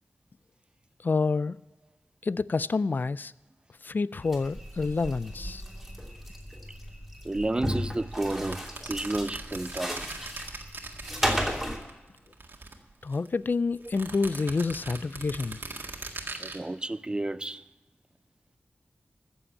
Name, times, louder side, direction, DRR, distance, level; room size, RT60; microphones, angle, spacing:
voice 1, 1.0-1.6 2.2-3.3 3.8-5.6 13.0-15.6, left 4 dB, 50° left, 0.4 m, -28 dB
sound 1, 4.2-11.8, equal, ahead, 2.8 m, -35 dB
voice 2, 7.2-10.1 16.3-17.6, right 2 dB, 20° right, 0.5 m, -31 dB
sound 2, 8.1-11.9 12.2-13.3 13.8-16.6, right 3 dB, 60° right, 1.8 m, -40 dB
14.5 x 7.1 x 8.5 m
wide cardioid pair, 75°, 4 cm